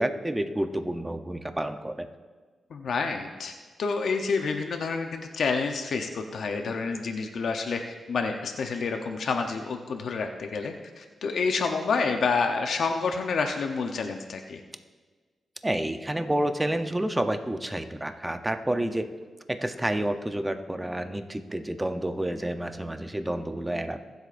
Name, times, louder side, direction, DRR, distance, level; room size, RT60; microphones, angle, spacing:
voice 1, 0.0-2.1 15.6-19.1 19.5-24.0, right 1 dB, 15° right, 8 dB, 0.7 m, -29 dB
voice 2, 2.7-3.5 3.8-7.8 8.1-14.6, left 4 dB, 70° left, 4 dB, 0.8 m, -28 dB
22.0 x 7.9 x 2.6 m, 1.4 s
cardioid pair, 85°, 0 cm